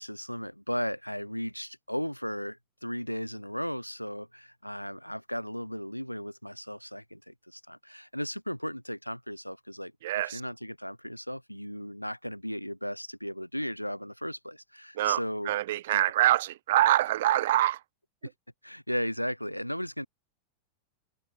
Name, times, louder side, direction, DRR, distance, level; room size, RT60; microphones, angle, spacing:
voice 1, 0.0-15.5 15.9-16.1 18.2-18.3 18.6-20.1, equal, 90° left, 1.4 m, -36 dB
voice 2, 10.0-10.4 15.0-17.8, right 14 dB, 55° right, 0.3 m, -25 dB
figure-of-eight pair, 90°, 0 cm